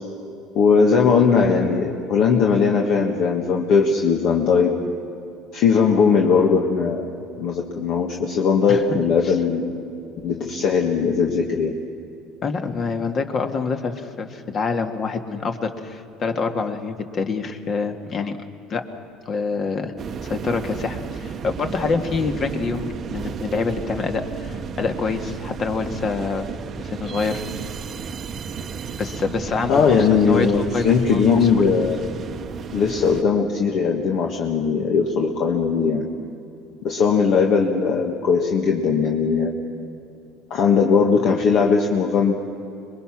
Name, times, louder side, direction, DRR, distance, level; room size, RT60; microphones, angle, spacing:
voice 1, 0.5-4.7 5.5-7.1 7.4-9.6 10.2-11.7 29.7-32.0 32.7-36.1 36.8-39.5 40.5-42.3, left 5 dB, 55° left, 1 dB, 1.7 m, -19 dB
voice 2, 12.4-18.4 18.7-18.8 19.2-19.9 20.2-26.5 26.8-27.4 29.0-30.5 30.7-30.9 31.4-31.6, left 4 dB, 35° left, 6 dB, 1.8 m, -26 dB
sound 1, 20.0-33.2, right 6 dB, 35° right, 0.9 m, -33 dB
26.0 x 22.0 x 6.0 m, 2.7 s
cardioid pair, 130°, 0 cm